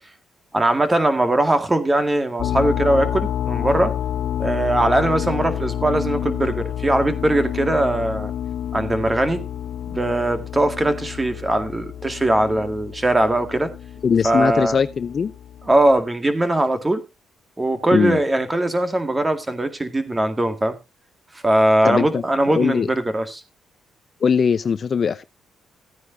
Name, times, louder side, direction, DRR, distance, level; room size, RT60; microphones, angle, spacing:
voice 1, 0.5-3.9 4.4-8.3 8.7-9.4 9.9-13.7 14.2-14.8 15.7-17.0 17.6-20.8 21.4-23.4, right 1 dB, 20° right, 2.0 m, -20 dB
sound 1, 2.4-16.0, left 10 dB, 70° left, 1.0 m, -29 dB
voice 2, 14.0-15.3 17.9-18.2 21.8-22.9 24.2-25.2, left 6 dB, 45° left, 0.7 m, -20 dB
15.5 x 9.5 x 2.7 m
cardioid pair, 90°, 0 cm